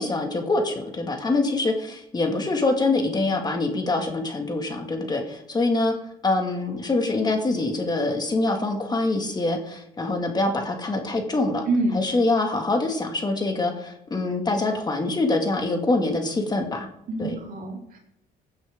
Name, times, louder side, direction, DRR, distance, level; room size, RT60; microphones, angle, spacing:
voice 1, 0.0-5.9 6.2-11.7 11.9-16.9 17.2-17.3, left 2 dB, 25° left, 3 dB, 2.0 m, -24 dB
voice 2, 11.7-12.0 17.1-18.0, right 2 dB, 55° right, -1 dB, 4.1 m, -26 dB
16.0 x 9.1 x 3.7 m, 0.79 s
cardioid pair, 110°, 17 cm